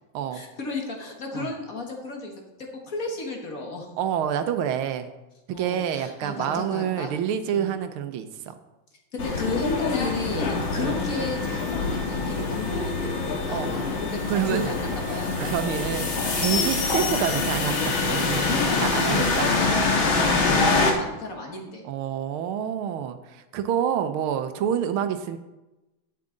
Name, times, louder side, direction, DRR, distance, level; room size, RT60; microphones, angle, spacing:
voice 1, 0.3-2.4 2.9-3.9 5.5-7.1 7.5-7.7 9.1-15.5 18.4-21.8, left 3 dB, 45° left, 1 dB, 1.7 m, -33 dB
voice 2, 4.0-5.1 5.5-8.6 10.8-11.0 13.5-13.9 14.2-14.7 15.1-16.1 16.3-18.5 18.8-19.5 20.6-20.9 21.8-25.4, right 9 dB, 85° right, 9 dB, 1.6 m, -28 dB
sound 1, 9.2-20.9, left 3 dB, 75° left, 2.2 m, -25 dB
10.5 x 8.6 x 3.8 m, 1.0 s
omnidirectional pair, 2.3 m